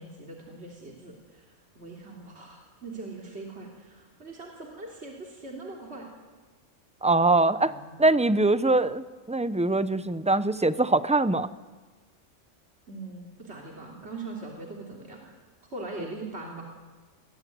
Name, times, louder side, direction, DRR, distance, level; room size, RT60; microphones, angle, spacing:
voice 1, 0.0-1.5 1.7-6.1 7.6-8.0 12.9-15.3 15.7-16.6, right 2 dB, 55° right, -1 dB, 3.5 m, -41 dB
voice 2, 7.0-7.7 8.0-11.5, right 2 dB, 5° right, 13 dB, 0.6 m, -23 dB
24.5 x 20.5 x 9.4 m, 1.4 s
omnidirectional pair, 1.3 m